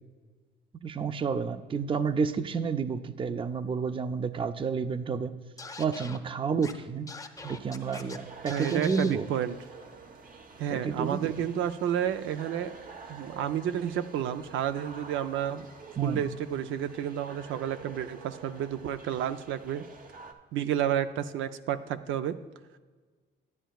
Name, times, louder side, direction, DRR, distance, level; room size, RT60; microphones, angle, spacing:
voice 1, 0.8-5.4 5.8-7.1 7.4-9.3 10.7-11.5 16.0-16.2, right 5 dB, 25° right, 11 dB, 0.4 m, -30 dB
Scratching (performance technique), 5.6-6.2 6.6-6.7 7.1-8.2 8.5-9.1, left 3 dB, 15° left, 0.7 m, -42 dB
sound 1, 7.3-20.3, right 4 dB, 45° right, 0.8 m, -48 dB
voice 2, 8.5-9.5 10.6-12.8 13.1-15.7 16.0-19.8 20.5-22.4, right 10 dB, 80° right, 10 dB, 0.5 m, -31 dB
12.0 x 9.0 x 2.3 m, 1.4 s
cardioid pair, 90°, 20 cm